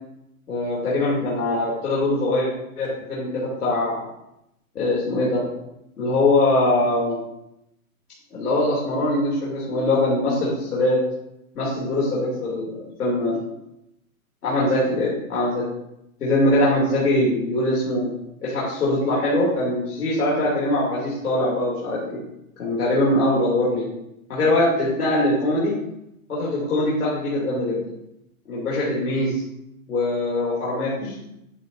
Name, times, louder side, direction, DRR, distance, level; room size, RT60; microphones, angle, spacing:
voice 1, 0.5-2.5 2.8-4.0 4.7-5.4 6.0-7.2 8.3-11.0 11.5-13.4 14.4-15.6 16.2-18.1 18.4-22.2 22.6-23.8 24.3-25.7 26.3-27.8 28.5-29.3 29.9-31.2, left 1 dB, 90° left, -7 dB, 3.1 m, -22 dB
10.5 x 7.1 x 2.7 m, 0.84 s
hypercardioid pair, 135°, 44 cm